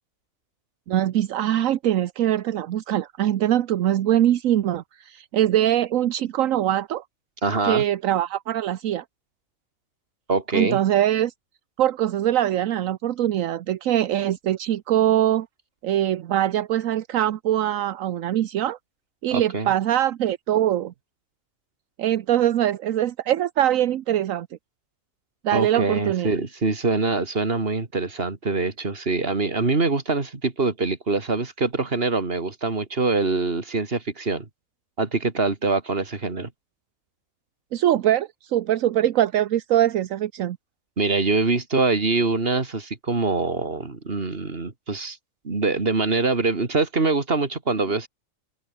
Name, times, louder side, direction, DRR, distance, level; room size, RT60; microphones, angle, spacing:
voice 1, 0.9-7.0 7.6-9.0 10.5-11.3 11.8-15.5 15.8-18.8 19.2-20.9 22.0-24.5 25.4-26.3 37.7-40.6, right 12 dB, 80° right, 1.1 m, -22 dB
voice 2, 7.4-7.8 10.3-10.8 19.3-19.7 25.5-34.5 35.0-36.5 41.0-45.2 45.4-48.1, right 3 dB, 45° right, 2.7 m, -24 dB
omnidirectional pair, 1.4 m